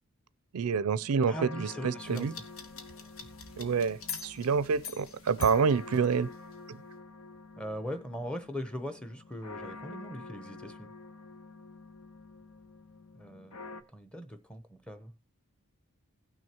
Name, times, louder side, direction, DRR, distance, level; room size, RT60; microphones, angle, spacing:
voice 1, 0.5-2.3 3.6-6.3 6.7-6.8, right 5 dB, 85° right, 0.4 m, -28 dB
sound 1, 0.6-13.8, left 3 dB, 85° left, 0.9 m, -48 dB
voice 2, 1.2-2.3 7.6-10.9 13.1-13.6 13.9-15.1, equal, 5° left, 0.7 m, -40 dB
sound 2, 2.0-6.5, left 6 dB, 70° left, 1.2 m, -45 dB
17.0 x 6.3 x 2.9 m
head